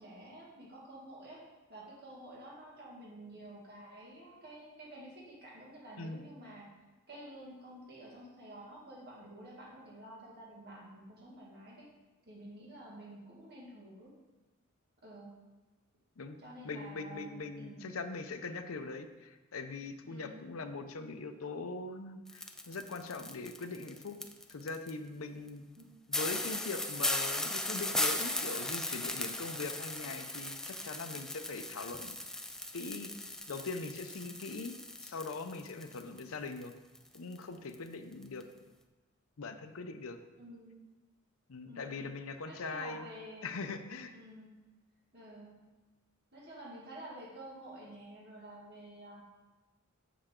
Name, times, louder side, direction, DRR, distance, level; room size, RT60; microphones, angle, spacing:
voice 1, 0.0-6.8 7.1-11.9 12.3-14.2 15.0-15.4 16.4-17.9 20.0-20.5 25.8-25.9 40.4-40.8 41.6-42.0 42.5-43.5 44.1-44.6 45.1-45.6 46.3-49.2, right 1 dB, 50° right, -4 dB, 1.9 m, -50 dB
voice 2, 16.6-24.2 24.5-25.6 26.1-32.2 32.7-33.1 33.5-34.7 35.0-36.7 37.1-38.4 39.4-40.2 41.5-43.1 43.4-44.1, left 3 dB, 80° left, 8 dB, 0.6 m, -41 dB
sound 1, 22.3-24.9 25.5-25.6 25.8-25.9 26.1-36.2 36.5-37.4 37.7-37.9 38.2-38.4, left 1 dB, 5° left, 0.3 m, -37 dB
6.9 x 6.5 x 3.7 m, 1.2 s
head